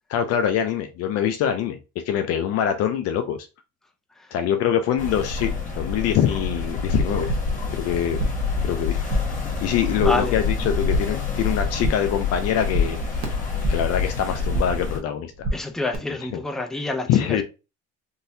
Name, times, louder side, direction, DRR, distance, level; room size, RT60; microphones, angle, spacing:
voice 1, 0.1-1.8 2.1-3.5 4.3-7.3 7.8-8.2 8.6-9.0 9.6-13.3 13.7-15.5 16.3-16.4 17.1-17.4, left 9 dB, 55° left, 0.5 m, -24 dB
sound 1, 5.0-15.0, left 4 dB, 25° left, 1.3 m, -27 dB
sound 2, 7.1-7.6 7.9-8.5 8.8-9.4 9.7-10.3 10.6-11.3 11.6-12.2 12.4-14.0 14.2-14.9 15.1-15.9, right 1 dB, 50° right, 1.1 m, -29 dB
voice 2, 10.0-10.4 15.5-17.4, left 2 dB, ahead, 0.4 m, -28 dB
3.8 x 2.7 x 2.6 m
cardioid pair, 125°, 29 cm